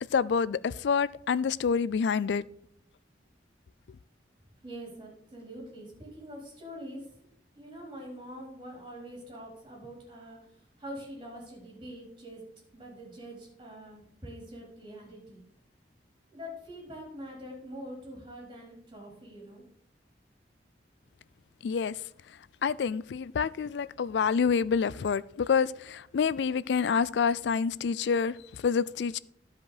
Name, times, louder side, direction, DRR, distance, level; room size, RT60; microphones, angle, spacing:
voice 1, 0.1-2.4 21.6-21.9 22.6-29.2, left 6 dB, 75° left, 0.4 m, -27 dB
voice 2, 4.6-7.1 7.5-12.4 12.7-15.4 16.3-19.6, equal, 25° right, 4.0 m, -44 dB
12.0 x 5.2 x 4.9 m
head